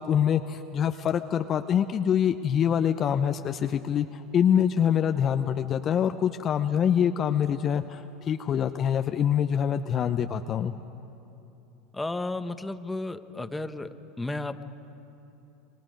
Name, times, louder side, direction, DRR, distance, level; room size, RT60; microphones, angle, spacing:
voice 1, 0.0-10.7, left 8 dB, 40° left, 8 dB, 0.7 m, -25 dB
voice 2, 11.9-13.9 14.2-14.6, left 2 dB, 10° left, 9 dB, 1.2 m, -33 dB
28.5 x 24.5 x 5.3 m, 2.9 s
hypercardioid pair, 90°, 0 cm